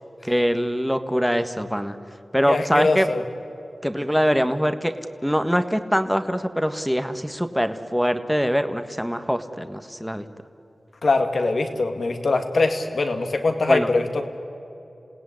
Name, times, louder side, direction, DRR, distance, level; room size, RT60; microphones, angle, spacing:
voice 1, 0.2-2.0 2.3-3.1 3.8-4.9 5.2-10.3 13.7-13.9, equal, ahead, 8 dB, 1.6 m, -23 dB
voice 2, 2.5-3.2 11.0-14.4, left 3 dB, 75° left, 6 dB, 2.2 m, -22 dB
28.0 x 17.0 x 10.0 m, 2.8 s
cardioid pair, 40°, 0 cm